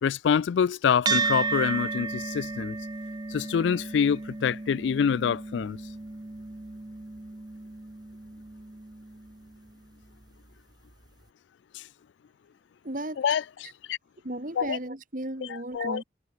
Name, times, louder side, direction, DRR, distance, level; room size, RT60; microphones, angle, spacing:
voice 1, 0.0-2.8 3.3-5.8 11.7-11.8 13.2-13.4 13.9-14.0 14.6-14.8 15.5-16.0, left 7 dB, 75° left, 0.3 m, -26 dB
sound 1, 1.1-9.7, right 4 dB, 20° right, 0.5 m, -33 dB
voice 2, 12.8-13.2 13.6-13.7 14.2-16.0, right 1 dB, 45° right, 2.8 m, -35 dB
head